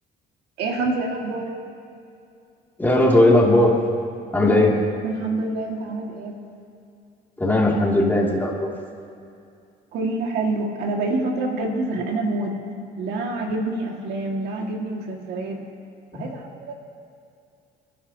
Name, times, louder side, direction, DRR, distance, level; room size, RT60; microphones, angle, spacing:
voice 1, 0.6-1.5 4.4-4.7 5.0-6.4 9.9-12.6 13.0-15.7 16.1-16.7, right 2 dB, 80° right, 1 dB, 2.0 m, -27 dB
voice 2, 2.8-3.7 4.3-4.7 7.4-8.7 16.1-16.3, left 1 dB, 10° left, -3 dB, 2.6 m, -17 dB
29.0 x 10.5 x 2.9 m, 2.4 s
cardioid pair, 110°, 17 cm